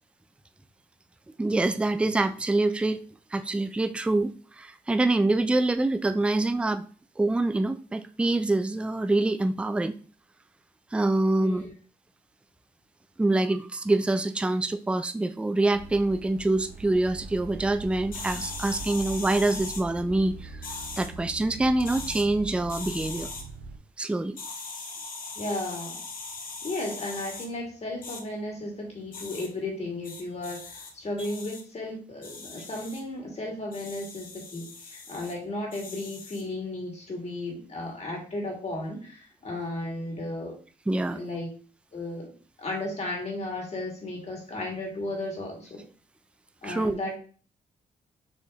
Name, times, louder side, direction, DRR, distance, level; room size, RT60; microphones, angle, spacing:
voice 1, 1.4-3.0 3.3-6.8 7.2-9.9 10.9-11.7 13.2-20.6 21.0-23.3 24.0-24.4 40.9-41.2 46.6-47.0, right 2 dB, 5° right, 10 dB, 0.3 m, -25 dB
voice 2, 11.4-11.7 25.3-26.0 26.6-40.6 41.1-41.5 41.9-45.8 46.6-47.2, left 2 dB, 45° left, -1 dB, 2.0 m, -34 dB
sound 1, 15.7-23.8, right 3 dB, 75° right, 0.6 m, -42 dB
sound 2, 18.1-19.8 20.6-21.1 21.8-22.2 22.7-23.4 24.4-27.5 28.0-28.2 29.1-29.5 30.0-30.9 31.2-31.6 32.2-33.0 33.7-35.3 35.7-36.5, left 4 dB, 60° left, 0.9 m, -40 dB
4.3 x 2.8 x 3.4 m, 0.42 s
cardioid pair, 75°, 16 cm